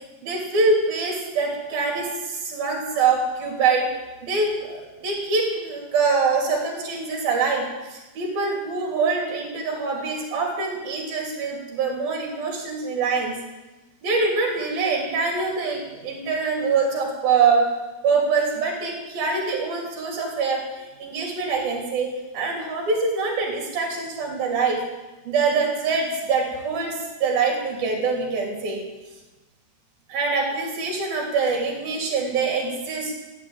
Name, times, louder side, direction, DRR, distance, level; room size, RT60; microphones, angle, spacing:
voice 1, 0.2-3.9 4.2-13.3 14.0-17.7 18.0-24.8 25.3-28.8 30.1-33.1, right 4 dB, 70° right, 1 dB, 4.9 m, -24 dB
15.0 x 9.7 x 8.8 m, 1.1 s
omnidirectional pair, 4.3 m